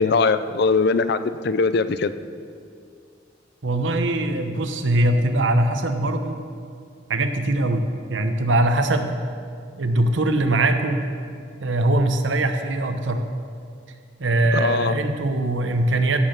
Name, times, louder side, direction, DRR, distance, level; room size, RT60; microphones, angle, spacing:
voice 1, 0.0-2.1 14.5-15.0, left 4 dB, 60° left, 13 dB, 0.5 m, -21 dB
voice 2, 3.6-6.4 7.1-9.1 9.8-11.1 11.6-13.2 14.2-16.2, right 2 dB, 75° right, 7 dB, 1.0 m, -21 dB
16.0 x 5.9 x 6.7 m, 2.2 s
head